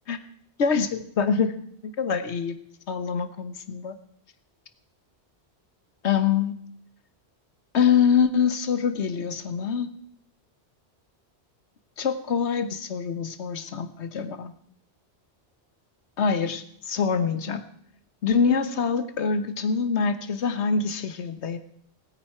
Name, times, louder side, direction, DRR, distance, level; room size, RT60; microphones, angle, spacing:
voice 1, 0.6-1.5 1.8-2.5 2.9-3.9 6.0-6.5 7.7-9.9 12.0-14.5 16.2-17.6 18.2-21.6, left 6 dB, 80° left, 10 dB, 1.3 m, -25 dB
19.5 x 9.3 x 4.4 m, 0.67 s
omnidirectional pair, 1.1 m